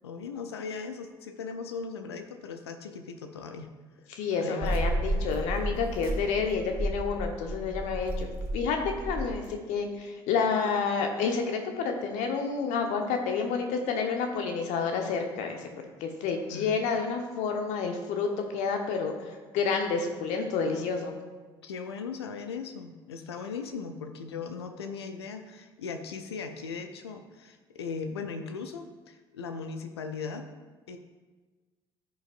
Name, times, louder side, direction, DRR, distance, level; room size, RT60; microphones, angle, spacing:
voice 1, 0.0-3.7 4.4-4.8 16.5-16.9 21.6-30.5 30.9-31.0, left 5 dB, 80° left, 7 dB, 0.6 m, -38 dB
voice 2, 4.1-8.8 9.0-21.1, left 5 dB, 60° left, 4 dB, 1.1 m, -29 dB
sound 1, 4.6-9.5, right 1 dB, 40° right, 2.2 m, -32 dB
14.0 x 5.3 x 2.5 m, 1.3 s
figure-of-eight pair, 50°, 13 cm